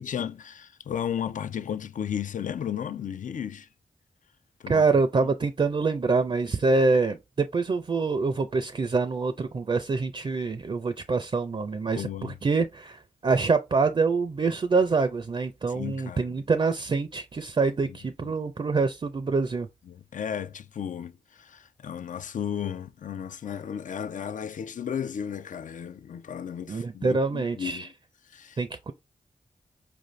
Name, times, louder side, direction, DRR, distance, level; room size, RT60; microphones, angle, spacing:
voice 1, 0.0-3.7 4.6-4.8 5.2-5.3 11.9-12.4 15.7-16.4 17.8-18.0 19.9-27.9 28.3-28.6, left 8 dB, 70° left, 0.4 m, -34 dB
voice 2, 4.7-19.7 26.7-27.9 28.6-28.9, right 4 dB, 40° right, 0.4 m, -25 dB
4.7 x 2.6 x 3.1 m
cardioid pair, 55°, 14 cm